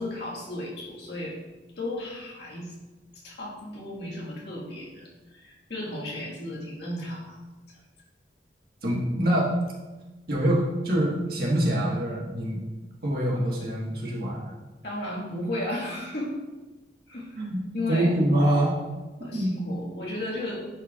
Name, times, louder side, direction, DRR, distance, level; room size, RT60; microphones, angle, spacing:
voice 1, 0.0-1.4 1.8-2.7 3.1-7.4 7.7-7.8 14.8-16.4 17.1-17.4 17.7-18.1 19.2-20.7, left 1 dB, 65° left, -4 dB, 1.7 m, -34 dB
voice 2, 8.8-9.5 10.3-12.6 13.0-14.5 17.3-17.6 17.9-18.8 19.3-19.5, right 1 dB, 55° right, -4 dB, 1.5 m, -25 dB
10.5 x 4.5 x 2.4 m, 1.2 s
head